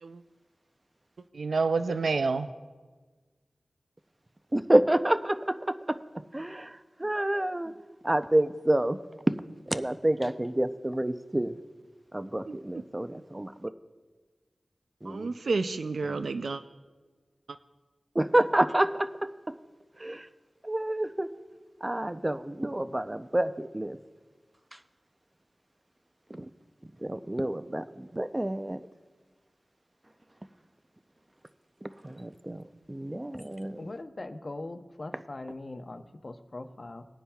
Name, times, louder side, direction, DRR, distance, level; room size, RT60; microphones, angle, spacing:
voice 1, 1.3-2.5 12.5-12.8 15.0-16.6, right 4 dB, 90° right, 9 dB, 0.3 m, -29 dB
voice 2, 4.5-6.0 6.3-7.7 8.0-9.0 9.3-9.4 9.7-11.6 12.1-13.7 15.0-15.3 16.1-16.3 18.1-19.1 19.5-19.6 20.0-20.3 20.6-21.3 21.8-24.0 26.3-26.5 27.0-28.8 31.8-33.9, right 1 dB, 25° right, 11 dB, 0.5 m, -28 dB
voice 3, 33.8-37.0, left 2 dB, 50° left, 7 dB, 0.8 m, -41 dB
19.5 x 9.8 x 2.3 m, 1.4 s
wide cardioid pair, 50°, 0 cm